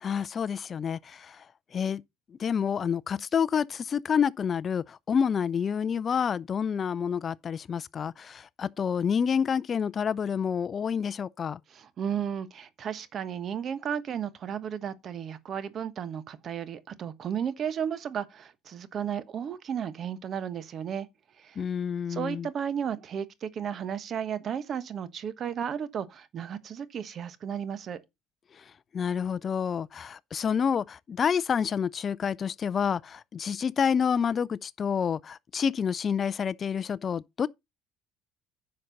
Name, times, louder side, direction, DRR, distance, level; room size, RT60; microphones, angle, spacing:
voice 1, 0.0-1.4 1.7-2.0 2.4-11.6 21.6-22.5 28.9-37.5, left 7 dB, 35° left, 0.4 m, -28 dB
voice 2, 11.7-21.1 21.4-21.6 22.1-28.0, right 8 dB, 45° right, 1.2 m, -34 dB
10.5 x 6.5 x 4.0 m
supercardioid pair, 105°, 0 cm